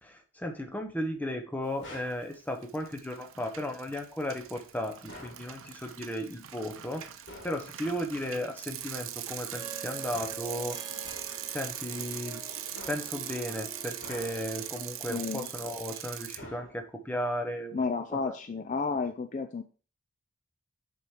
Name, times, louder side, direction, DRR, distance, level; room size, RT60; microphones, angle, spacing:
voice 1, 0.0-7.0 7.4-10.8 11.5-12.4 12.9-17.8 18.1-18.3, equal, 5° left, 3 dB, 0.9 m, -35 dB
sound 1, 1.8-2.3 5.1-5.5 7.3-7.6 10.1-10.5 11.0-11.4 12.7-13.2 14.0-14.6 16.4-17.0, left 1 dB, 60° left, 2.8 m, -48 dB
Bicycle, 2.0-2.3 2.6-16.4, right 11 dB, 75° right, 0.6 m, -41 dB
Harp, 9.4-15.3, right 3 dB, 20° right, 1.3 m, -47 dB
voice 2, 15.1-15.5 17.7-19.6, left 4 dB, 35° left, 7 dB, 0.4 m, -32 dB
6.8 x 4.4 x 4.8 m, 0.38 s
head